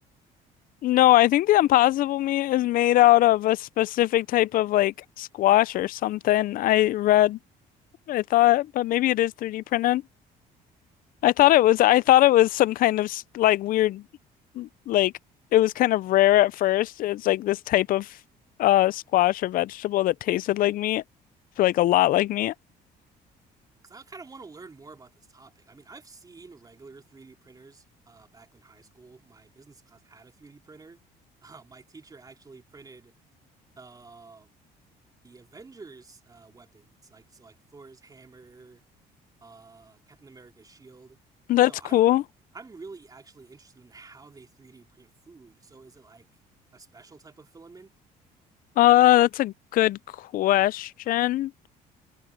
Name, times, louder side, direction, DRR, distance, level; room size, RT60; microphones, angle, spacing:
voice 1, 0.8-7.4 8.1-10.0 11.2-14.0 14.6-15.1 15.5-18.2 18.6-21.0 21.6-22.5 41.5-42.2 48.8-51.5, left 15 dB, 55° left, 0.4 m, -21 dB
voice 2, 23.8-31.0 31.4-33.1 33.8-34.5 35.2-38.8 39.4-41.2 41.6-42.0 42.5-46.3 46.7-47.9, right 4 dB, 20° right, 2.7 m, -49 dB
cardioid pair, 110°, 17 cm